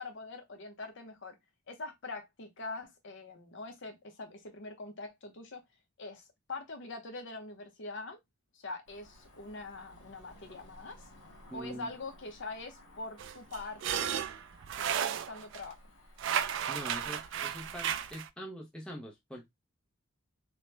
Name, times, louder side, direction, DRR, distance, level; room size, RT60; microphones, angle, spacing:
voice 1, 0.0-1.4 1.7-5.6 6.0-8.2 8.5-11.0 11.5-14.2 14.7-15.8, left 3 dB, 55° left, 0.8 m, -43 dB
Cricket / Motor vehicle (road), 8.9-18.2, left 1 dB, 85° left, 1.5 m, -57 dB
voice 2, 11.5-11.9 16.7-19.5, equal, 5° left, 0.5 m, -44 dB
sound 1, 13.2-15.6 16.2-18.3, right 9 dB, 55° right, 0.3 m, -34 dB
3.1 x 2.1 x 3.1 m
head